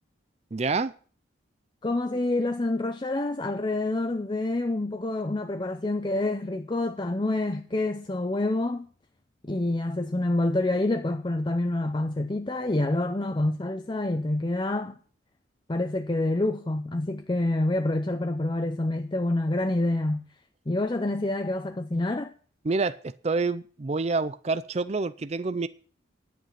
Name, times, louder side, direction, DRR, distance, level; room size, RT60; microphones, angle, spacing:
voice 1, 0.5-0.9 22.6-25.7, right 3 dB, 35° right, 0.4 m, -27 dB
voice 2, 1.8-8.9 9.4-15.0 15.7-20.2 20.7-22.3, left 2 dB, 25° left, 0.6 m, -27 dB
11.0 x 9.3 x 5.8 m
head